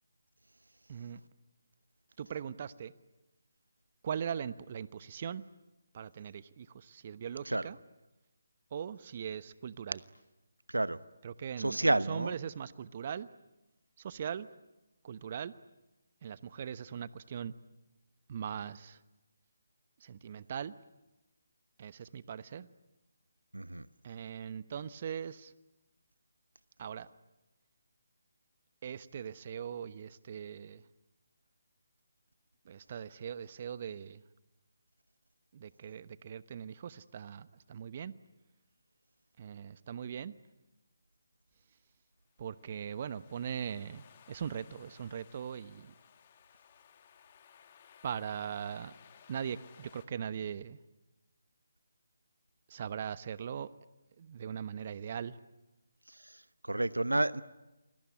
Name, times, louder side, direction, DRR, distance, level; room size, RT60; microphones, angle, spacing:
voice 1, 0.9-1.2 2.2-2.9 4.0-5.4 5.9-7.8 8.7-10.0 11.2-13.3 14.0-14.5 15.0-15.5 16.2-17.5 18.3-19.0 20.0-20.7 21.8-22.7 24.0-25.5 26.8-27.1 28.8-30.8 32.6-34.2 35.5-38.1 39.4-40.3 42.4-45.9 48.0-48.9 49.3-50.8 52.7-53.7 54.2-55.3, right 8 dB, 40° right, 1.0 m, -40 dB
voice 2, 10.7-11.0 11.6-12.4 23.5-23.9 56.2-56.4 56.6-57.4, right 2 dB, 90° right, 1.0 m, -30 dB
sound 1, 42.4-50.1, left 8 dB, 35° left, 2.1 m, -60 dB
28.5 x 21.5 x 9.7 m
figure-of-eight pair, 150°, 0 cm